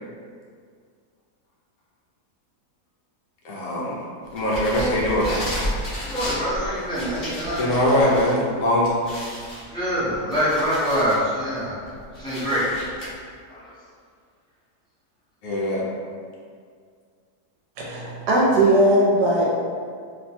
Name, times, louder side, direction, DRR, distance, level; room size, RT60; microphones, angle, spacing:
voice 1, 3.4-3.9 4.3-5.3 7.6-8.9 15.4-15.8, left 1 dB, 70° left, -5 dB, 1.0 m, -21 dB
sound 1, 4.4-8.3 8.7-8.8 9.0-11.2 11.7-13.1, equal, 45° left, 1.0 m, -32 dB
voice 2, 6.0-8.2 9.7-11.8 12.1-12.7 13.5-13.7, equal, 5° left, -13 dB, 0.5 m, -25 dB
voice 3, 17.8-19.6, right 1 dB, 85° right, -4 dB, 1.2 m, -19 dB
3.0 x 2.1 x 2.7 m, 2.1 s
omnidirectional pair, 1.7 m